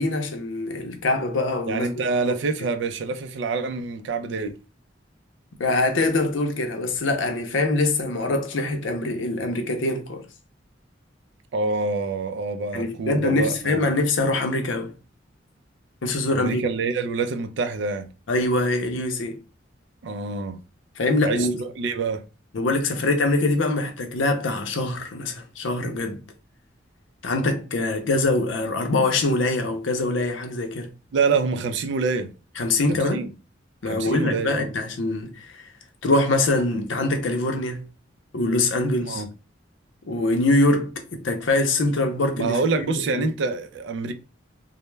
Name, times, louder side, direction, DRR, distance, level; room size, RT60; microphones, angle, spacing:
voice 1, 0.0-1.9 2.2-2.3 5.6-10.2 12.7-14.9 16.0-16.6 18.3-19.4 21.0-21.6 22.5-26.2 27.2-30.9 32.6-33.2 33.8-35.7 36.0-37.8 38.3-39.2 40.0-42.6 42.9-43.3, left 2 dB, 80° left, 0.6 m, -24 dB
voice 2, 1.7-4.6 11.5-13.8 16.3-18.1 20.0-20.6 21.2-22.2 31.1-32.3 32.9-33.3 33.8-34.7 39.0-39.3 42.4-44.1, right 4 dB, 65° right, 0.3 m, -26 dB
2.2 x 2.0 x 3.1 m
head